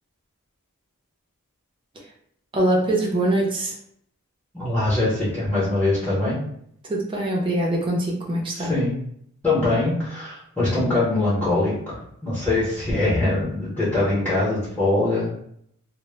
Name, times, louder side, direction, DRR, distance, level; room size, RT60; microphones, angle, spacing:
voice 1, 2.5-3.7 6.9-8.7, right 1 dB, 25° right, -2 dB, 0.5 m, -23 dB
voice 2, 4.5-6.4 8.5-8.9 9.4-15.3, left 2 dB, 10° left, -8 dB, 0.7 m, -23 dB
2.0 x 2.0 x 3.2 m, 0.69 s
head